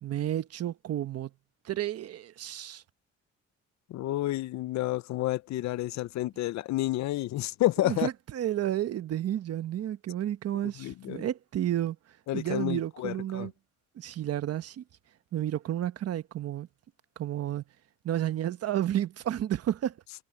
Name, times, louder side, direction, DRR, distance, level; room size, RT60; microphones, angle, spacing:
voice 1, 0.0-1.3 1.6-2.8 7.8-12.0 12.3-13.5 13.9-14.8 15.3-16.7 17.2-17.6 18.0-19.9, right 11 dB, 55° right, 1.2 m, -31 dB
voice 2, 3.9-8.1 10.8-11.3 12.3-13.5, left 16 dB, 65° left, 0.7 m, -30 dB
cardioid pair, 105°, 29 cm